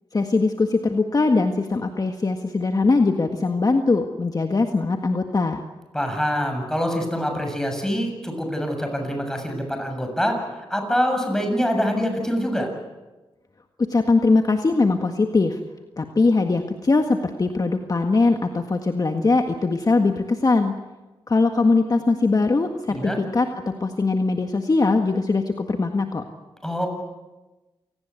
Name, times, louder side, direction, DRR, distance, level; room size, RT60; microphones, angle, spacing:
voice 1, 0.1-5.6 13.8-15.6 16.0-20.7 21.3-23.5 23.8-26.2, left 3 dB, 40° left, 5 dB, 1.7 m, -21 dB
voice 2, 5.9-10.4 10.7-12.7 22.9-23.2 26.6-26.9, equal, 5° left, 4 dB, 7.1 m, -25 dB
28.0 x 19.0 x 8.3 m, 1.1 s
cardioid pair, 70°, 10 cm